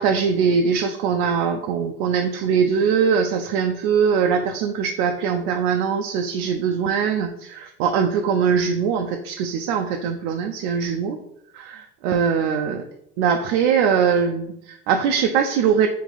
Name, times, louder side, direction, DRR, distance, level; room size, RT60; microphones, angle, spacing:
voice 1, 0.0-11.2 11.5-12.8 13.2-15.9, right 6 dB, 65° right, 4 dB, 0.5 m, -21 dB
2.9 x 2.9 x 4.0 m, 0.75 s
hypercardioid pair, 80°, 33 cm